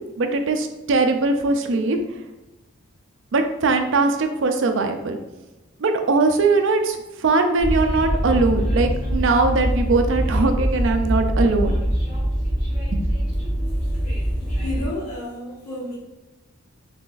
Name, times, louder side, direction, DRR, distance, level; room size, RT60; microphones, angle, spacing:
voice 1, 0.2-2.0 3.3-5.2 5.8-11.8 12.9-13.0, right 3 dB, 55° right, 6 dB, 0.4 m, -20 dB
Train, 7.6-14.8, equal, 35° left, 1.4 m, -23 dB
voice 2, 14.6-16.0, left 1 dB, 80° left, -6 dB, 1.2 m, -31 dB
3.8 x 3.3 x 2.5 m, 1.1 s
head